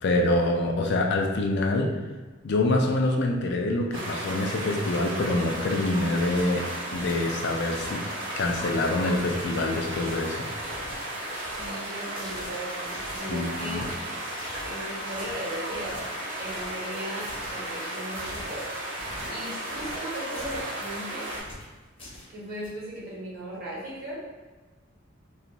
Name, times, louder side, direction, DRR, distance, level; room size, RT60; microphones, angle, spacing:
voice 1, 0.0-1.9 2.4-6.7 6.9-8.0 8.4-10.5 13.3-13.8, left 2 dB, 55° left, 2 dB, 0.4 m, -25 dB
sound 1, 3.9-21.4, right 1 dB, 70° right, 0.9 m, -35 dB
sound 2, 6.1-22.7, left 1 dB, 25° left, 0.7 m, -46 dB
voice 2, 11.1-13.9 14.6-16.0 16.4-18.7 19.3-21.3 22.3-24.2, right 1 dB, 45° right, -6 dB, 0.9 m, -37 dB
2.4 x 2.3 x 2.9 m, 1.2 s
head